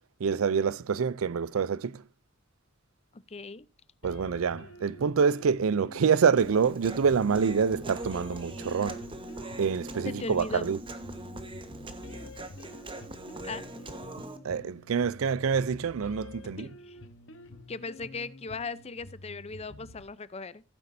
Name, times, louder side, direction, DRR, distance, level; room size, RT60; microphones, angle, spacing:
voice 1, 0.2-2.0 4.0-9.0 9.6-10.8 14.4-16.7, right 6 dB, 80° right, 0.5 m, -26 dB
voice 2, 3.1-3.7 10.0-10.7 13.4-13.6 16.6-17.0 17.7-20.6, left 3 dB, 30° left, 0.6 m, -38 dB
sound 1, 4.0-20.0, left 2 dB, 65° left, 1.1 m, -48 dB
Human voice, 6.4-14.4, right 1 dB, 25° right, 1.3 m, -42 dB
16.0 x 9.5 x 2.7 m
head